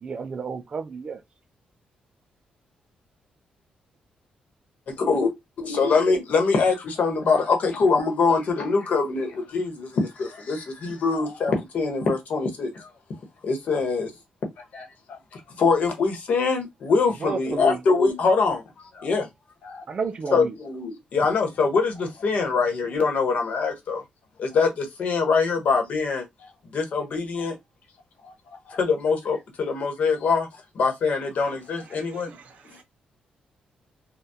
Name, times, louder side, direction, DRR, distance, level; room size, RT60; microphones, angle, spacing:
voice 1, 0.0-1.2 17.2-17.8 19.9-20.5, right 5 dB, 35° right, 0.4 m, -31 dB
voice 2, 4.9-12.9 13.4-14.1 14.7-19.3 19.6-19.8 20.3-24.0 24.4-26.3 26.7-27.6 28.2-28.3 28.6-30.5 30.7-32.3, left 4 dB, 60° left, 1.0 m, -24 dB
voice 3, 32.0-32.8, right 4 dB, 60° right, 0.7 m, -50 dB
3.5 x 2.2 x 2.7 m
cardioid pair, 135°, 3 cm